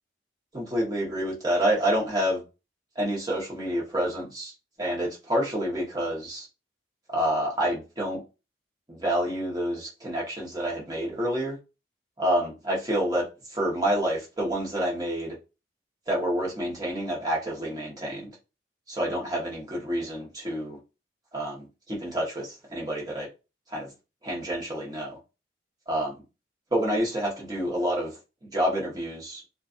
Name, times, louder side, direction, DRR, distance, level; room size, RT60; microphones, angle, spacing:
voice 1, 0.5-2.4 3.0-4.5 4.8-6.5 7.1-8.2 8.9-11.6 12.2-13.3 13.5-15.3 16.1-18.3 18.9-20.8 21.3-23.3 23.7-23.9 24.2-25.1 25.9-26.2 26.7-28.1 28.5-29.4, equal, 20° right, 0.9 m, -28 dB
2.4 x 2.4 x 2.4 m
head